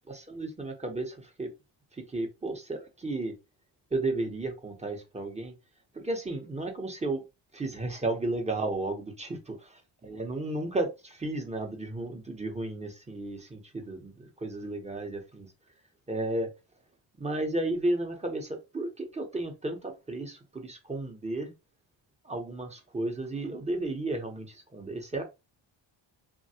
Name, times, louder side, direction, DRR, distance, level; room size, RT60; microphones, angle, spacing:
voice 1, 0.1-1.5 1.9-3.3 3.9-5.5 5.9-7.2 7.5-9.4 10.0-15.5 16.1-16.5 17.2-21.5 22.2-25.2, right 2 dB, 15° right, 0.6 m, -33 dB
3.2 x 2.2 x 2.7 m
cardioid pair, 125°, 48 cm